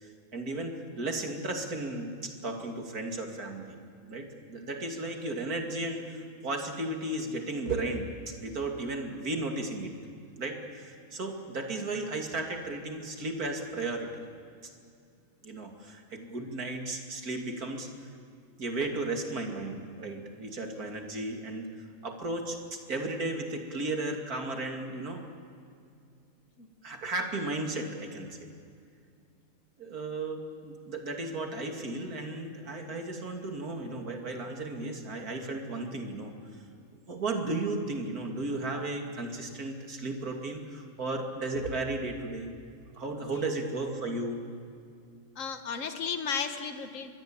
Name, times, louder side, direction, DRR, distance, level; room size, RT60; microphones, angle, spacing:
voice 1, 0.0-3.8 4.1-9.9 10.4-14.1 15.4-17.9 18.6-21.7 22.0-25.2 26.8-28.5 29.8-36.3 37.1-42.6 43.0-44.4, right 2 dB, 90° right, 3 dB, 3.1 m, -34 dB
voice 2, 45.4-47.2, left 6 dB, 60° left, 7 dB, 1.8 m, -34 dB
24.0 x 21.5 x 8.9 m, 2.3 s
omnidirectional pair, 1.5 m